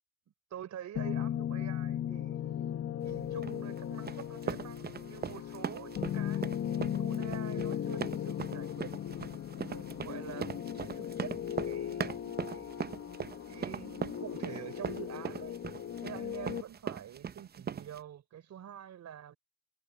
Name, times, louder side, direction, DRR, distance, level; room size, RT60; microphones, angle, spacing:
voice 1, 0.5-8.9 9.6-13.0 13.5-15.6 16.0-19.4, right 10 dB, 65° right, 4.2 m, -47 dB
sound 1, 1.0-16.6, left 10 dB, 50° left, 1.2 m, -37 dB
sound 2, 3.4-18.0, right 7 dB, 30° right, 0.7 m, -40 dB
cardioid pair, 90°, 30 cm